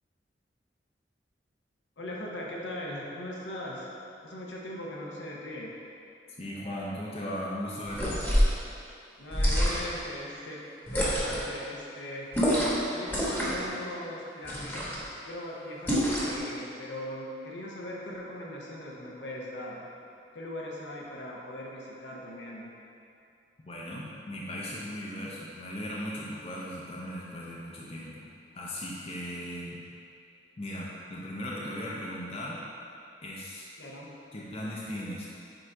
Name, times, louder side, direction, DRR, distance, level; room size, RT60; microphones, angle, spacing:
voice 1, 2.0-3.9 4.2-5.7 9.2-10.6 10.9-12.6 12.9-19.9 20.3-22.7 33.8-34.1, left 1 dB, 75° left, -3 dB, 0.9 m, -40 dB
voice 2, 6.4-8.3 23.6-28.3 28.5-29.8 30.6-32.6 33.2-33.7 34.3-35.3, equal, 35° left, -5 dB, 0.6 m, -37 dB
sound 1, 7.9-8.6 9.3-10.0 10.9-11.5 12.3-12.8 13.1-13.7 14.4-15.0 15.9-16.4, equal, 10° left, 1.1 m, -26 dB
7.8 x 2.7 x 4.5 m, 2.6 s
head